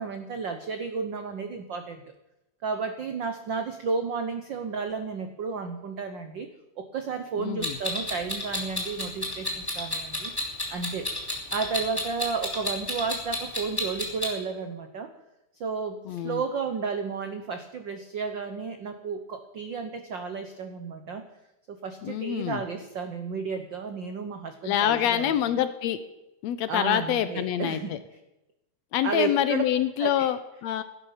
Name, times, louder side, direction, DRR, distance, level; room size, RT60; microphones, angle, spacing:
voice 1, 0.0-2.0 2.6-6.5 6.8-10.3 10.7-11.1 11.5-15.1 15.5-21.2 21.7-25.3 26.7-27.9 29.0-29.6 30.0-30.3, right 5 dB, 75° right, 8 dB, 1.0 m, -32 dB
voice 2, 7.4-7.8 16.1-16.4 22.0-22.6 24.6-26.0 26.4-28.0 28.9-30.8, left 10 dB, 75° left, 12 dB, 1.8 m, -26 dB
Clock, 7.6-14.3, left 1 dB, 10° left, 2.6 m, -31 dB
17.0 x 11.0 x 5.8 m, 0.93 s
omnidirectional pair, 3.4 m